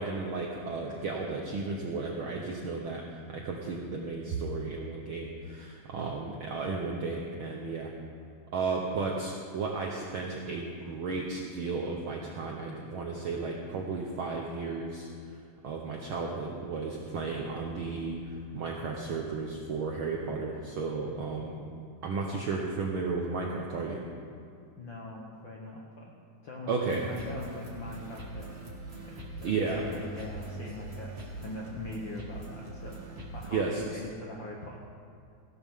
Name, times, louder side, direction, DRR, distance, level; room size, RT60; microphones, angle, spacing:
voice 1, 0.0-7.9 8.5-15.1 15.6-21.7 22.0-24.0 26.7-27.0 29.4-29.8 33.5-34.0, right 4 dB, 75° right, 0 dB, 1.2 m, -34 dB
voice 2, 24.8-26.1 26.4-28.6 29.0-29.2 29.4-34.8, left 2 dB, 65° left, -2 dB, 1.2 m, -42 dB
sound 1, 26.8-33.6, right 2 dB, 25° right, 1.5 m, -42 dB
16.0 x 12.0 x 3.6 m, 2.5 s
omnidirectional pair, 3.5 m